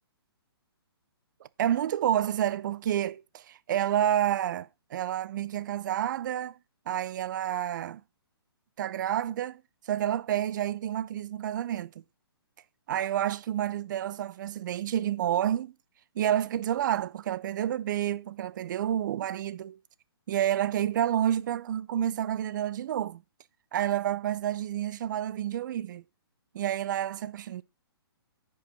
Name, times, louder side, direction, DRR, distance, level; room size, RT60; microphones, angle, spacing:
voice 1, 1.6-6.6 6.9-8.0 8.8-9.6 9.9-11.9 12.9-15.7 16.2-19.8 20.3-23.2 23.7-26.0 26.5-27.6, right 11 dB, 50° right, 0.6 m, -29 dB
10.0 x 5.4 x 6.1 m
hypercardioid pair, 135°, 13 cm